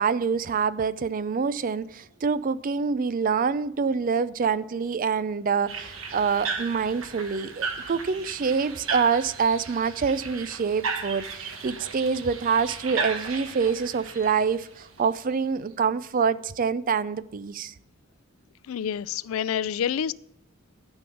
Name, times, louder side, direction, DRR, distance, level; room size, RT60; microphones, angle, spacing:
voice 1, 0.0-17.7, right 5 dB, 45° right, 0.4 m, -26 dB
sound 1, 5.7-15.4, right 5 dB, 80° right, 1.4 m, -35 dB
voice 2, 18.7-20.1, left 8 dB, 90° left, 0.4 m, -28 dB
12.0 x 5.4 x 6.9 m
head